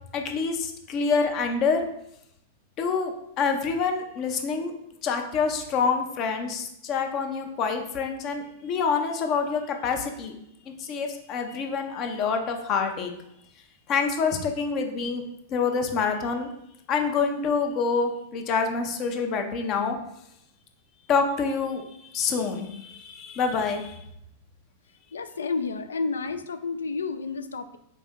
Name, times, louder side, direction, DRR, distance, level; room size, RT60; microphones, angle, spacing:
voice 1, 0.1-1.8 2.8-4.7 5.0-10.4 10.7-13.1 13.9-15.2 15.5-16.5 16.9-20.0 21.1-24.0, left 5 dB, 40° left, 5 dB, 0.6 m, -27 dB
voice 2, 25.1-27.8, left 4 dB, 80° left, 10 dB, 0.3 m, -30 dB
4.1 x 2.8 x 3.5 m, 0.78 s
figure-of-eight pair, 100°, 0 cm